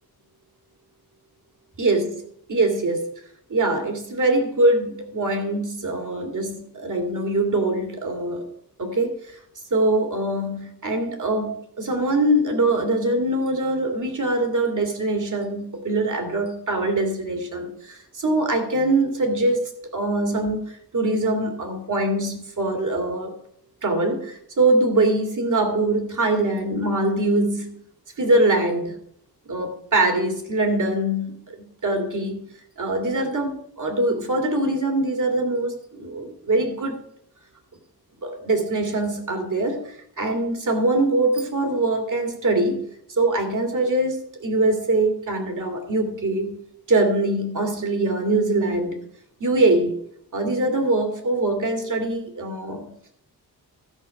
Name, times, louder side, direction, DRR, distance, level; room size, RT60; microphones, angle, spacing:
voice 1, 2.5-3.1 3.5-8.5 8.8-9.1 9.7-23.4 23.8-27.8 28.2-29.0 29.5-31.6 31.8-32.5 32.8-37.0 38.2-46.6 46.9-49.0 49.4-50.0 50.3-52.8, right 2 dB, 50° right, 3 dB, 2.4 m, -23 dB
13.0 x 5.8 x 5.7 m, 0.69 s
cardioid pair, 75°, 39 cm